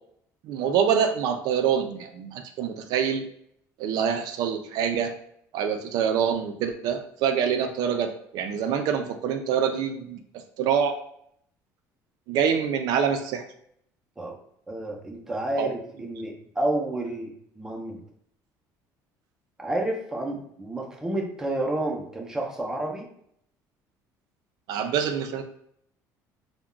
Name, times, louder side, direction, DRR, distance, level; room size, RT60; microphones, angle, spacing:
voice 1, 0.4-3.2 3.8-5.2 5.5-10.2 10.6-11.0 12.3-13.5 15.6-15.7 24.7-25.4, right 7 dB, 70° right, 6 dB, 0.3 m, -25 dB
voice 2, 14.7-18.0 19.6-23.1, right 1 dB, 10° right, 0 dB, 0.5 m, -30 dB
2.3 x 2.1 x 3.6 m, 0.69 s
cardioid pair, 145°, 7 cm